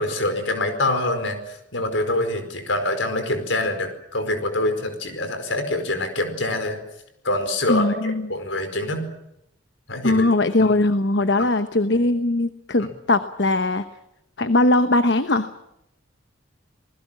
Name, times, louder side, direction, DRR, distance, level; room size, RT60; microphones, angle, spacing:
voice 1, 0.0-6.8 7.2-9.1 9.9-10.3 10.6-10.7 11.4-11.5 12.8-12.9, left 1 dB, 80° left, 8 dB, 4.9 m, -25 dB
voice 2, 7.7-8.3 10.0-13.9 14.4-15.5, left 2 dB, 65° left, 10 dB, 1.0 m, -20 dB
28.5 x 20.0 x 7.5 m, 0.82 s
head